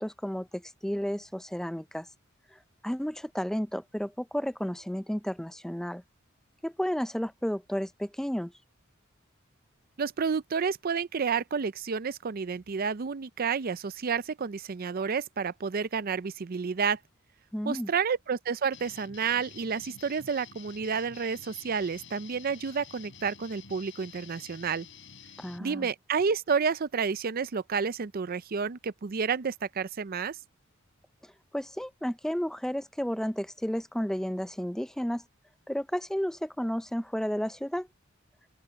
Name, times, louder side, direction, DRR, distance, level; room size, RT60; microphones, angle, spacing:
voice 1, 0.0-2.1 2.8-6.0 6.6-8.5 17.5-17.9 25.4-25.9 31.5-35.2 35.7-37.9, equal, ahead, 0.5 m, -32 dB
voice 2, 10.0-17.0 17.7-24.9 25.6-30.4, right 6 dB, 45° right, 0.5 m, -30 dB
sound 1, 18.7-25.6, left 7 dB, 65° left, 5.8 m, -50 dB
open air
head